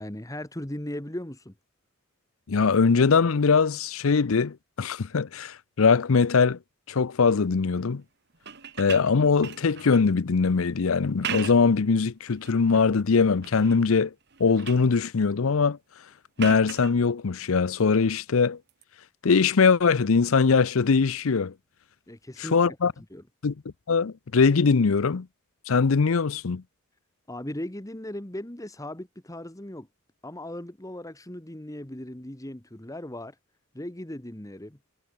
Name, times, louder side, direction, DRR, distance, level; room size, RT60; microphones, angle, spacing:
voice 1, 0.0-1.5 22.1-22.8 23.1-23.2 27.3-29.9 30.2-33.3 33.7-34.8, left 1 dB, 15° left, 1.4 m, -37 dB
voice 2, 2.5-6.6 6.9-8.0 8.8-14.1 14.4-15.8 16.4-18.6 19.2-21.5 22.4-22.9 23.4-23.5 23.9-25.3 25.7-26.6, left 5 dB, 70° left, 0.6 m, -22 dB
sound 1, 8.3-10.1 11.0-11.8 12.3-12.9 13.4-13.9 14.2-14.9 16.4-16.9 18.7-18.8, right 7 dB, 50° right, 2.6 m, -38 dB
head